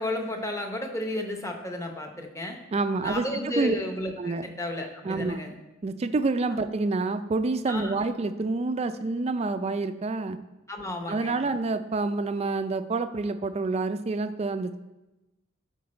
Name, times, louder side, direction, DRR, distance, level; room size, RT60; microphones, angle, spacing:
voice 1, 0.0-2.6 3.0-5.5 7.7-7.9 10.7-11.4, left 1 dB, 15° left, 3 dB, 0.9 m, -33 dB
voice 2, 2.7-3.7 4.2-4.5 5.0-5.4 5.8-10.4 11.1-14.8, right 3 dB, 30° right, 10 dB, 0.4 m, -28 dB
12.0 x 4.6 x 4.3 m, 1.0 s
head